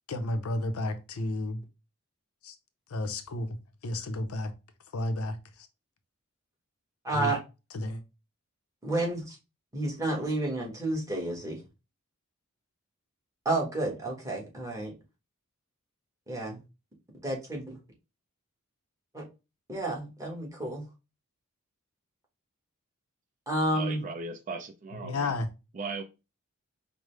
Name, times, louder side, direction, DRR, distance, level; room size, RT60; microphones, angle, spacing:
voice 1, 0.1-1.6 2.4-2.6 2.9-3.6 3.8-4.5 4.9-5.7 7.1-7.3 7.7-8.0 25.0-25.5, left 2 dB, 70° left, 0.6 m, -32 dB
voice 2, 7.0-7.4 8.8-9.4 9.7-11.6 13.4-14.9 16.3-16.6 17.2-17.8 19.1-19.2 19.7-20.8 23.5-24.0, right 1 dB, 15° right, 1.2 m, -30 dB
voice 3, 23.7-25.3 25.7-26.0, right 4 dB, 35° right, 0.5 m, -37 dB
4.9 x 2.0 x 3.2 m
head